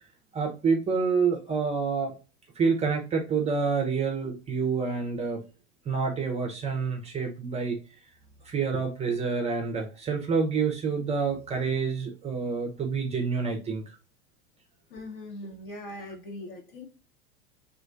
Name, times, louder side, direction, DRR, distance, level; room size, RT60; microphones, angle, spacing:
voice 1, 0.3-2.1 2.6-5.4 5.9-7.8 8.5-13.8, right 5 dB, 20° right, 3 dB, 0.5 m, -28 dB
voice 2, 14.9-16.9, left 1 dB, 55° left, 3 dB, 0.9 m, -40 dB
2.4 x 2.1 x 2.4 m, 0.32 s
figure-of-eight pair, 85°, 34 cm